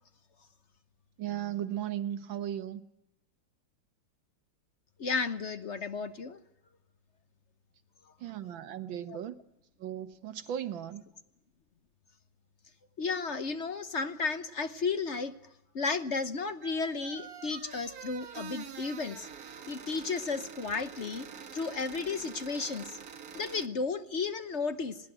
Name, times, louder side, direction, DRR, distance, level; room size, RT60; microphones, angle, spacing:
voice 1, 1.2-2.8 8.2-9.3 9.8-11.1, right 10 dB, 85° right, 1.9 m, -36 dB
voice 2, 5.0-6.4 9.1-9.2 13.0-15.3 15.7-19.3 19.7-23.0 23.3-25.0, left 4 dB, 45° left, 1.1 m, -33 dB
sound 1, 16.6-23.7, right 7 dB, 55° right, 1.6 m, -46 dB
21.0 x 18.0 x 9.0 m
omnidirectional pair, 2.1 m